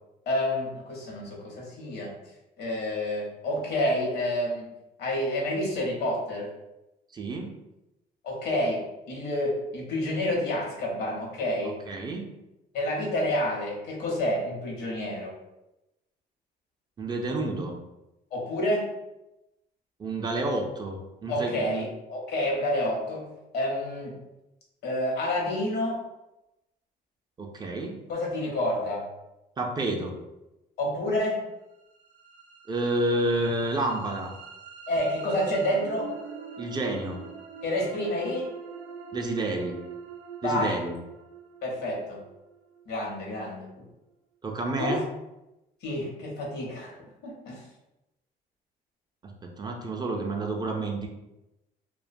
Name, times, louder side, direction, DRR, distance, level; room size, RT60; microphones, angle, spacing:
voice 1, 0.3-2.1 2.6-4.7 5.0-6.5 8.2-11.8 12.7-15.4 18.3-18.9 21.3-23.3 23.5-24.2 24.8-26.0 28.1-29.1 30.8-31.4 34.9-36.1 37.6-38.4 40.4-40.8 41.6-42.2 42.9-43.7 44.8-45.0 45.8-47.0 47.2-47.6, left 1 dB, 75° left, -2 dB, 0.8 m, -29 dB
voice 2, 7.1-7.5 11.6-12.3 17.0-17.8 20.0-21.9 27.4-28.0 29.6-30.2 32.7-34.3 36.6-37.3 39.1-39.8 40.4-41.0 44.4-45.0 49.2-51.1, right 2 dB, 25° right, 2 dB, 0.3 m, -30 dB
sound 1, 31.9-43.9, right 6 dB, 85° right, 0.5 m, -44 dB
2.4 x 2.1 x 2.5 m, 0.95 s
cardioid pair, 110°, 17 cm